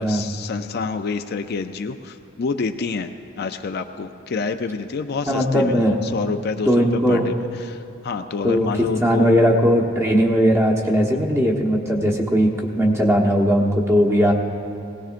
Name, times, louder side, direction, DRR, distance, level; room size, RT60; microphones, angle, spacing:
voice 1, 0.0-3.1 3.4-9.3, left 4 dB, 50° left, 7 dB, 0.4 m, -28 dB
voice 2, 5.3-6.0 6.7-7.3 8.4-8.7 9.0-14.3, equal, 15° right, 0 dB, 1.2 m, -18 dB
20.0 x 17.5 x 2.5 m, 2.7 s
head